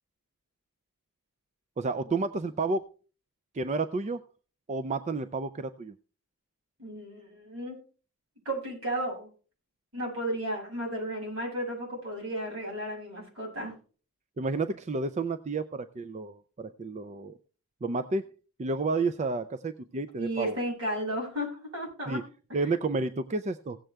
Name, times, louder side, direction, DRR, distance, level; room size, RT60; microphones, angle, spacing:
voice 1, 1.8-2.8 3.5-4.2 4.7-5.9 14.4-17.4 17.8-18.3 18.6-20.6 22.1-22.2 22.5-23.8, right 3 dB, 30° right, 11 dB, 0.4 m, -31 dB
voice 2, 6.8-7.8 8.5-9.3 9.9-13.7 20.2-22.2 22.5-22.7, right 1 dB, 75° right, -1 dB, 6.9 m, -34 dB
16.5 x 7.7 x 3.4 m, 0.39 s
head